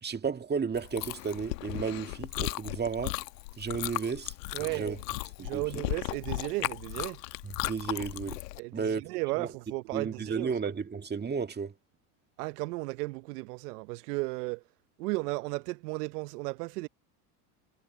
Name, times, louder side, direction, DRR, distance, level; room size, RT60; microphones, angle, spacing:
voice 1, 0.0-3.2 3.6-5.0 5.4-5.6 7.4-8.4 8.7-9.0 9.4-9.5 9.9-11.7, right 5 dB, 20° right, 1.9 m, -33 dB
Chewing mastication, 0.7-8.6, left 19 dB, 80° left, 1.2 m, -36 dB
voice 2, 4.5-5.0 5.4-7.2 8.6-10.5 12.4-14.6 15.0-16.9, right 23 dB, 70° right, 0.9 m, -34 dB
hypercardioid pair, 90°, 48 cm